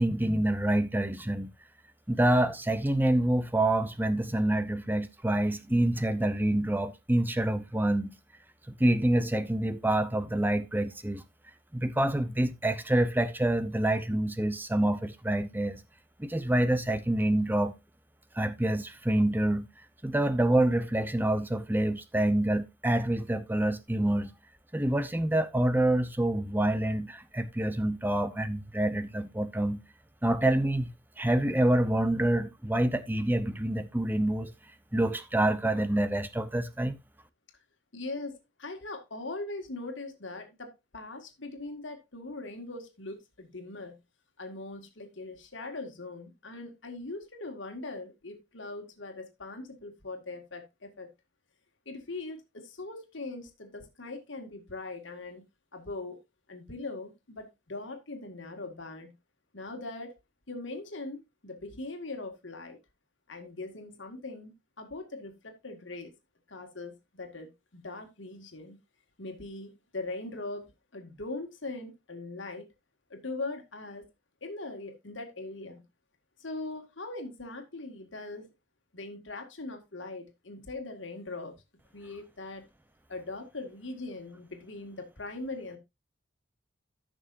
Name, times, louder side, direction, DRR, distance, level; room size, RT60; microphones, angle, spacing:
voice 1, 0.0-1.5 2.1-8.1 8.8-11.2 11.7-15.8 16.2-17.7 18.3-19.7 20.0-24.3 24.7-29.8 30.2-30.9 31.2-34.5 34.9-37.0, right 1 dB, 10° right, 0.7 m, -27 dB
voice 2, 37.9-43.9 44.4-51.1 51.9-55.4 55.7-56.2 56.5-59.1 59.5-60.2 60.5-62.8 63.3-66.1 66.5-68.8 69.2-72.7 73.1-74.1 74.4-75.8 76.4-78.5 78.9-81.6 81.9-82.7 83.1-85.8, left 2 dB, 80° left, 2.0 m, -41 dB
14.5 x 6.2 x 2.6 m
head